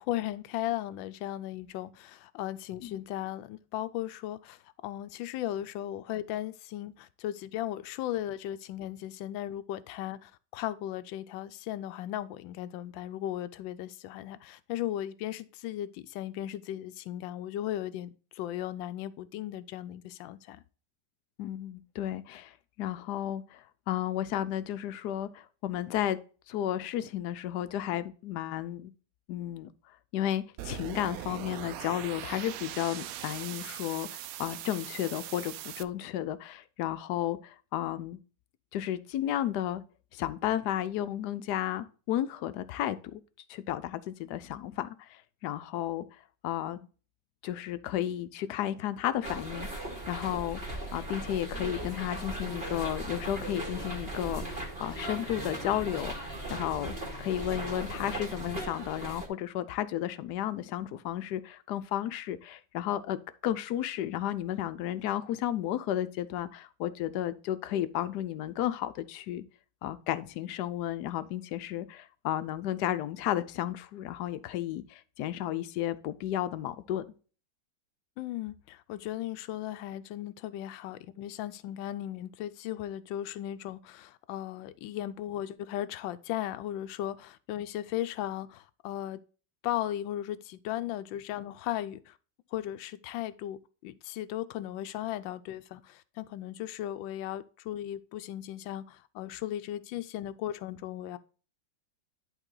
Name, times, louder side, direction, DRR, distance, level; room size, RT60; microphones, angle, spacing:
voice 1, 0.0-20.6 78.2-89.2 89.6-92.2 92.5-101.2, left 13 dB, 85° left, 1.3 m, -36 dB
voice 2, 21.4-26.2 26.5-28.9 29.3-29.7 30.1-38.2 38.7-39.8 40.1-43.2 43.5-46.1 46.4-46.8 47.4-50.6 50.9-63.2 63.4-69.4 69.8-77.0, left 12 dB, 70° left, 1.1 m, -33 dB
sound 1, 30.6-35.8, right 12 dB, 80° right, 0.8 m, -41 dB
sound 2, 49.2-59.3, right 1 dB, 30° right, 2.1 m, -38 dB
11.0 x 3.9 x 3.8 m
omnidirectional pair, 2.0 m